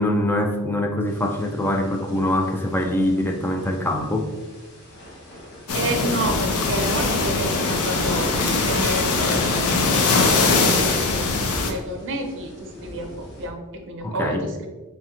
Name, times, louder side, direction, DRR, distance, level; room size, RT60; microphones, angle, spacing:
voice 1, 0.0-4.3 14.0-14.4, left 1 dB, 10° left, 3 dB, 0.3 m, -23 dB
sound 1, 1.1-13.5, left 1 dB, 50° left, 0.9 m, -39 dB
sound 2, 5.7-11.7, left 3 dB, 75° left, 0.5 m, -21 dB
voice 2, 5.7-14.7, right 1 dB, 55° right, 4 dB, 0.6 m, -30 dB
3.7 x 3.2 x 2.9 m, 1.2 s
head